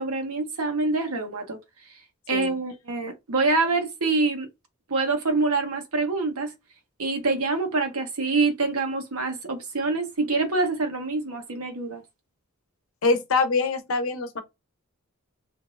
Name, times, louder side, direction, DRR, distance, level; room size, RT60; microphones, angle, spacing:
voice 1, 0.0-1.6 1.9-2.0 2.3-4.5 4.9-6.5 7.0-12.0, right 3 dB, 85° right, 0.9 m, -26 dB
voice 2, 13.0-14.4, left 3 dB, 70° left, 0.7 m, -24 dB
3.1 x 2.5 x 2.5 m
head